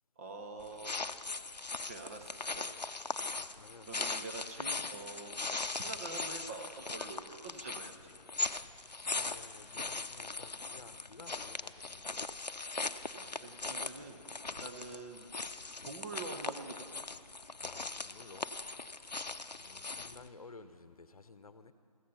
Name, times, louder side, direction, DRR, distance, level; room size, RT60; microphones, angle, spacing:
voice 1, 0.2-1.0 1.8-2.8 3.8-8.1 13.1-15.3 15.8-16.9 19.4-19.5, right 3 dB, 20° right, 5 dB, 0.8 m, -46 dB
sound 1, 0.6-20.3, left 3 dB, 90° left, 0.7 m, -40 dB
voice 2, 3.1-4.2 8.8-12.1 17.5-18.5 18.9-21.7, left 3 dB, 60° left, 12 dB, 0.9 m, -55 dB
16.0 x 15.0 x 5.7 m, 2.2 s
figure-of-eight pair, 150°, 21 cm